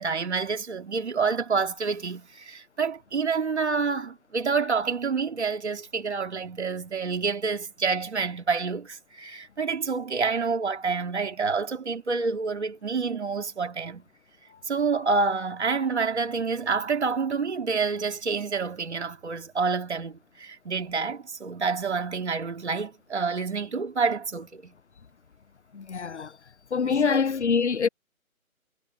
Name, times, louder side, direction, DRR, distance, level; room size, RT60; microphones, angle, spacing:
voice 1, 0.0-14.0 14.7-24.7 26.8-27.2, right 5 dB, 50° right, 2.5 m, -28 dB
voice 2, 25.7-26.3 26.7-27.9, left 5 dB, 55° left, 0.7 m, -24 dB
figure-of-eight pair, 165°, 43 cm